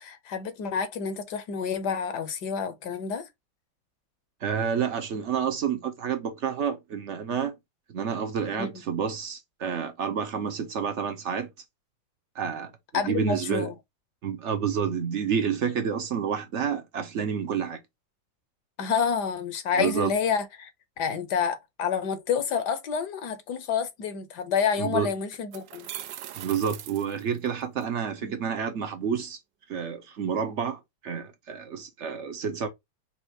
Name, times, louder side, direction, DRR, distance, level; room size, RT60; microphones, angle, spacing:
voice 1, 0.0-3.3 8.6-8.7 12.9-13.7 18.8-20.7 21.0-25.9 28.2-28.4, left 6 dB, 65° left, 1.3 m, -28 dB
voice 2, 4.4-7.5 7.9-11.5 12.3-12.7 13.0-13.7 14.2-17.8 19.8-20.1 24.8-25.1 26.3-29.4 29.7-32.7, right 7 dB, 55° right, 0.8 m, -29 dB
sound 1, 24.7-24.8 25.3-27.8, right 12 dB, 75° right, 1.2 m, -41 dB
5.5 x 2.4 x 2.8 m
omnidirectional pair, 2.0 m